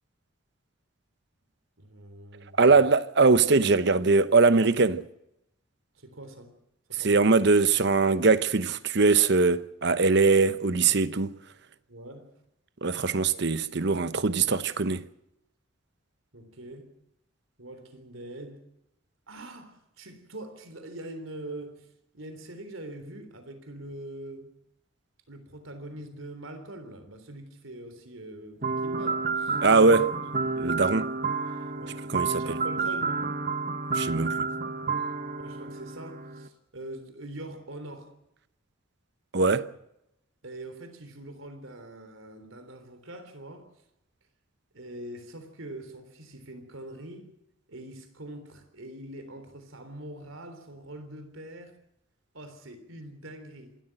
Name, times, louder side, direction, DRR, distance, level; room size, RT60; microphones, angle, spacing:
voice 1, 1.8-2.8 6.0-6.5 6.9-7.4 11.9-12.3 14.5-14.6 16.3-16.9 17.6-18.6 19.3-21.9 22.1-24.5 25.3-29.6 29.9-30.0 31.7-33.2 35.4-38.1 40.4-43.7 44.7-47.3 47.7-51.8 52.3-53.7, right 1 dB, 90° right, 3.6 m, -43 dB
voice 2, 2.6-5.0 7.0-11.3 12.8-15.0 29.6-30.1 30.6-31.1 32.1-32.6 33.9-34.5 39.3-39.7, right 4 dB, 60° right, 0.9 m, -22 dB
sound 1, 28.6-36.5, right 4 dB, 40° right, 1.2 m, -30 dB
27.0 x 13.5 x 7.8 m
head